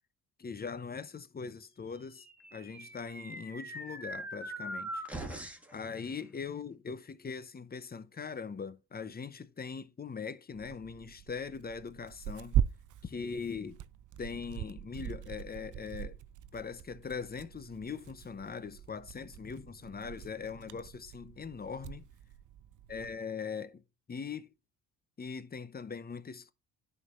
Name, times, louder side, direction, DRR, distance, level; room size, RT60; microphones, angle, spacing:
voice 1, 0.4-2.3 2.5-5.1 5.7-12.6 13.0-13.8 14.2-16.2 16.5-22.1 22.9-23.8 24.1-24.5 25.2-26.5, left 5 dB, 20° left, 0.6 m, -41 dB
sound 1, 2.2-5.8, right 1 dB, 5° right, 1.7 m, -42 dB
Tearing, 10.5-23.2, right 10 dB, 45° right, 0.5 m, -40 dB
10.5 x 4.5 x 2.4 m
supercardioid pair, 60°, 43 cm